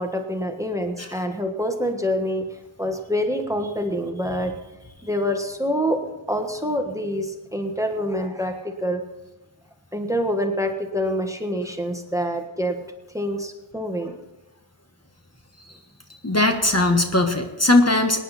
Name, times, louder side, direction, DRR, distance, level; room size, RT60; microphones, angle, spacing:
voice 1, 0.0-2.5 2.8-4.5 5.0-6.0 6.3-9.0 9.9-12.8 13.1-14.2, equal, 5° right, 5 dB, 1.4 m, -26 dB
voice 2, 16.2-18.2, left 2 dB, 30° left, 4 dB, 1.4 m, -19 dB
18.5 x 10.0 x 4.3 m, 0.99 s
wide cardioid pair, 50°, 49 cm